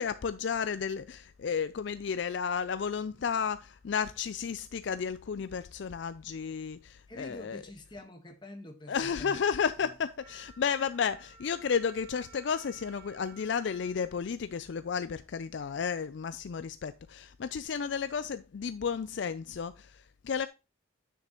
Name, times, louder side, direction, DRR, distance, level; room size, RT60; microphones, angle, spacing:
voice 1, 0.0-7.6 8.9-20.5, left 6 dB, 60° left, 0.4 m, -32 dB
voice 2, 7.1-9.4 9.8-10.0, left 1 dB, 20° left, 1.3 m, -46 dB
Wind instrument woodwind instrument, 10.2-15.0, right 6 dB, 45° right, 4.6 m, -56 dB
9.9 x 6.5 x 3.0 m
head